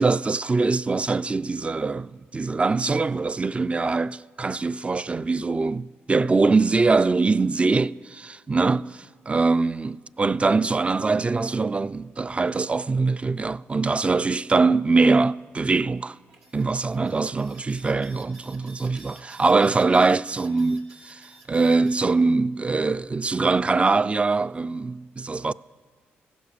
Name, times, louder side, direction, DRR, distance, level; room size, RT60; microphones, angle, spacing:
voice 1, 0.0-16.2 16.5-25.5, right 3 dB, 25° right, 0.3 m, -23 dB
sound 1, 16.3-22.1, right 2 dB, 90° right, 2.0 m, -50 dB
16.0 x 11.5 x 6.8 m
supercardioid pair, 65°, 5 cm